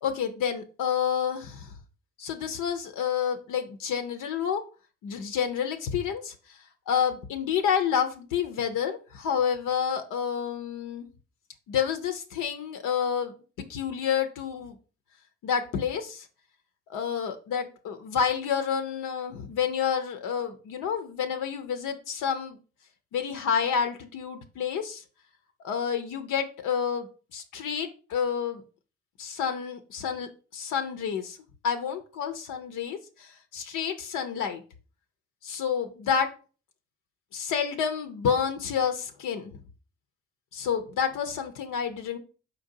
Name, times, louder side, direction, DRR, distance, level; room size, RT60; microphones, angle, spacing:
voice 1, 0.0-1.7 2.2-4.6 5.0-6.6 6.9-11.1 11.7-14.8 15.4-16.3 16.9-22.6 23.1-25.0 25.6-28.6 29.2-31.4 31.6-34.6 35.4-36.3 37.3-39.5 40.5-42.2, left 7 dB, 80° left, 6 dB, 0.6 m, -29 dB
4.4 x 3.9 x 2.7 m, 0.36 s
supercardioid pair, 45°, 31 cm